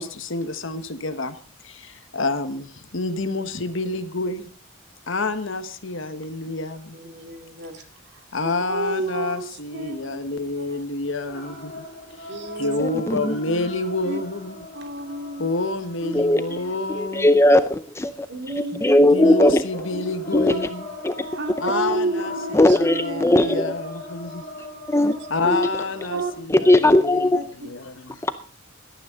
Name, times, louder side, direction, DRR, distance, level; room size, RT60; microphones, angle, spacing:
voice 1, 0.0-1.4 1.6-4.5 5.1-7.0 8.3-11.8 12.2-12.3 12.6-14.7 15.4-17.4 19.1-20.9 21.6-24.4 25.3-28.2, left 2 dB, 65° left, 10 dB, 1.4 m, -28 dB
voice 2, 6.9-7.8 8.1-10.2 10.6-10.8 12.3-12.8 14.0-14.2 14.7-15.5 16.0-16.1 16.5-16.7 18.3-19.3 19.9-20.1 21.3-23.7 26.1-26.3 27.3-27.4, right 2 dB, 55° right, 6 dB, 2.5 m, -31 dB
sound 1, 11.2-17.5 19.7-26.3, left 2 dB, 40° left, 7.1 m, -39 dB
voice 3, 12.8-13.4 16.1-16.4 16.9-19.6 20.3-20.5 21.0-21.2 22.5-23.7 24.9-25.2 25.5-25.7 26.5-27.4 28.2-28.3, left 1 dB, 15° left, 11 dB, 0.6 m, -18 dB
18.0 x 13.0 x 3.9 m, 0.41 s
head